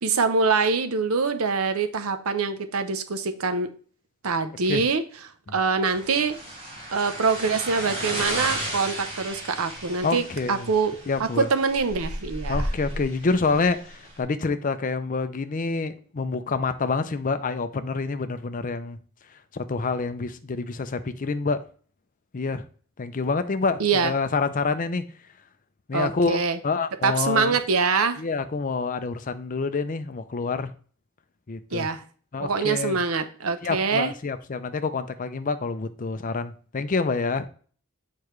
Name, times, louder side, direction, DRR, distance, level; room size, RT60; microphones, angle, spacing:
voice 1, 0.0-3.7 4.2-5.0 5.5-6.4 6.9-10.9 11.2-12.7 23.8-24.1 25.9-26.6 27.0-28.2 31.7-32.0 32.4-34.1, right 4 dB, 70° right, 9 dB, 0.7 m, -24 dB
sound 1, 5.9-14.2, right 1 dB, 25° right, 2.1 m, -33 dB
voice 2, 10.0-10.7 11.1-11.5 12.5-19.0 19.5-21.6 22.3-22.6 23.0-25.0 25.9-26.4 26.6-27.5 28.2-30.7 31.5-31.9 32.3-33.0 33.6-37.5, left 4 dB, 35° left, 11 dB, 0.5 m, -27 dB
6.8 x 4.7 x 3.1 m, 0.43 s
head